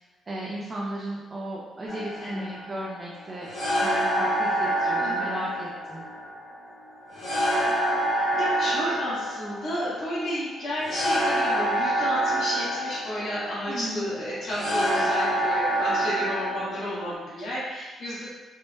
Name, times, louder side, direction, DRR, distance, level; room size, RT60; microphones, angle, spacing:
voice 1, 0.3-3.5 3.8-6.0 13.7-14.1, right 1 dB, 35° right, -5 dB, 0.5 m, -35 dB
sound 1, 1.9-17.1, right 1 dB, 85° left, 1.1 m, -27 dB
voice 2, 5.0-5.3 8.1-18.3, equal, 60° left, -15 dB, 1.3 m, -32 dB
3.6 x 2.1 x 2.6 m, 1.2 s
cardioid pair, 90°, 0 cm